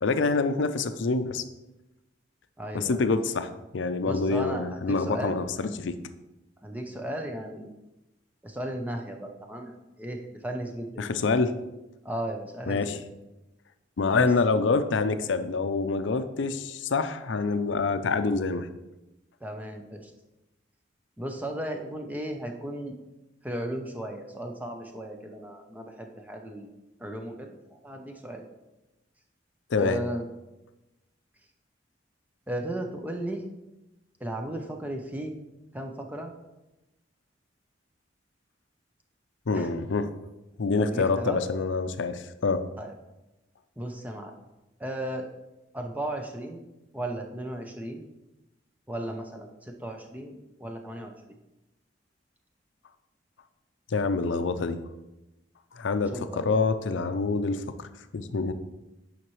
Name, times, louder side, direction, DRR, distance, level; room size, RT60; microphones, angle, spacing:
voice 1, 0.0-1.4 2.7-5.9 11.0-11.6 12.7-13.0 14.0-18.7 29.7-30.0 39.5-40.1 40.6-42.6 53.9-54.8 55.7-57.9 58.1-58.5, left 4 dB, 80° left, 10 dB, 0.5 m, -26 dB
voice 2, 2.6-3.0 4.0-5.4 6.6-7.7 8.4-11.1 12.0-12.9 14.1-14.3 19.4-20.1 21.2-22.9 23.4-26.7 27.0-28.5 29.8-30.2 32.5-33.4 34.2-35.3 35.7-36.3 39.5-39.7 40.8-41.4 42.8-42.9 43.8-44.3 44.8-45.3 45.7-46.6 46.9-48.0 48.9-51.1 56.1-56.5, right 1 dB, 10° right, 3 dB, 0.6 m, -35 dB
8.9 x 5.7 x 3.1 m, 0.99 s
head